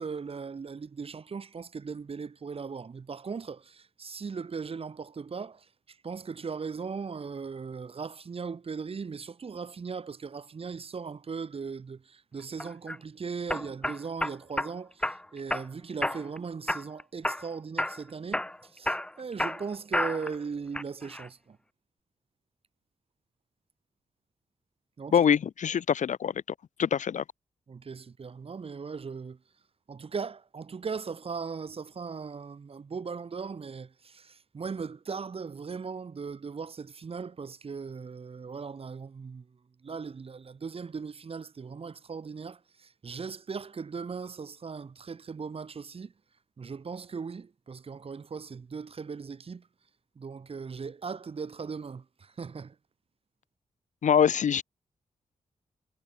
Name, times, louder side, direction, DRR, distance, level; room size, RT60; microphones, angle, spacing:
voice 1, 0.0-5.7 6.0-21.6 25.0-25.2 27.7-29.4 29.9-39.5 39.8-46.1 46.6-49.7 50.2-52.8, right 5 dB, 50° right, 2.0 m, -38 dB
sound 1, 12.6-13.0 13.5-14.7 15.0-15.7 16.0-16.4 16.7-17.5 17.8-18.0 18.3-20.4 20.7-21.3, left 1 dB, 5° left, 0.8 m, -31 dB
voice 2, 25.1-26.3 26.8-27.2 54.0-54.6, left 8 dB, 70° left, 1.4 m, -24 dB
cardioid pair, 85°, 13 cm